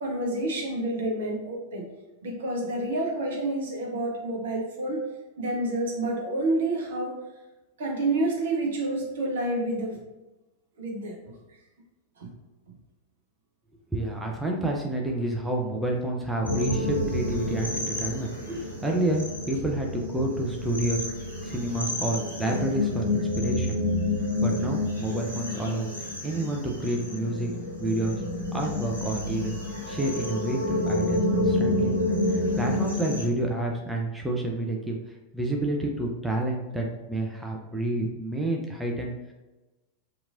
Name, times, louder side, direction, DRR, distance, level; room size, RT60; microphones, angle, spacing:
voice 1, 0.0-1.9 2.2-5.0 5.4-7.1 7.8-10.0 10.8-11.2 12.2-12.3, right 2 dB, 60° right, 0 dB, 0.7 m, -28 dB
voice 2, 13.9-21.0 21.4-23.8 24.4-27.5 27.8-28.2 28.5-29.6 29.9-31.9 32.3-35.0 35.3-39.3, right 1 dB, 5° right, 0 dB, 0.4 m, -29 dB
sound 1, 16.4-33.2, left 2 dB, 90° left, 0.8 m, -29 dB
2.8 x 2.5 x 2.4 m, 1.1 s
figure-of-eight pair, 90°, 0 cm